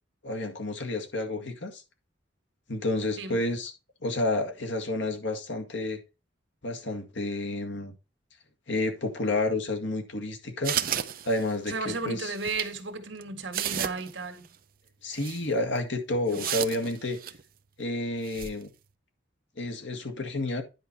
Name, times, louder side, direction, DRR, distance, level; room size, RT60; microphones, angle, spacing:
voice 1, 0.2-1.8 2.7-3.7 4.0-6.0 6.6-7.9 8.7-10.8 11.3-12.3 15.0-17.2 17.8-18.7 19.6-20.6, left 2 dB, 70° left, 1.9 m, -30 dB
sound 1, 10.6-11.7 12.4-12.7 13.2-13.3 13.5-14.1 14.5-14.6 15.2-15.4 16.3-17.4 18.3-18.5, right 10 dB, 45° right, 0.7 m, -32 dB
voice 2, 11.6-14.5 16.3-16.6, right 3 dB, 70° right, 1.8 m, -34 dB
10.5 x 5.3 x 4.3 m
head